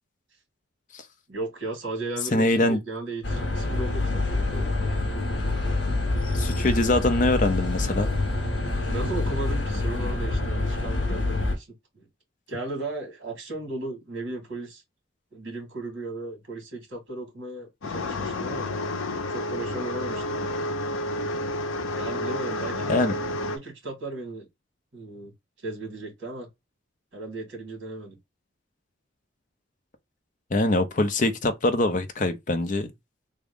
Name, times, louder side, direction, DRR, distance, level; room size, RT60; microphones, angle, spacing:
voice 1, 1.3-4.7 8.9-11.7 11.9-12.1 12.5-14.8 15.3-18.7 19.3-20.4 21.9-24.5 24.9-25.3 25.6-26.5 27.1-28.2, right 2 dB, 60° right, 2.2 m, -36 dB
voice 2, 2.3-2.8 6.3-8.1 22.9-23.1 30.5-32.9, left 2 dB, 40° left, 0.5 m, -23 dB
sound 1, 3.2-11.6, left 2 dB, 65° left, 0.9 m, -26 dB
sound 2, 17.8-23.6, left 1 dB, 90° left, 0.6 m, -30 dB
3.5 x 2.2 x 3.6 m
head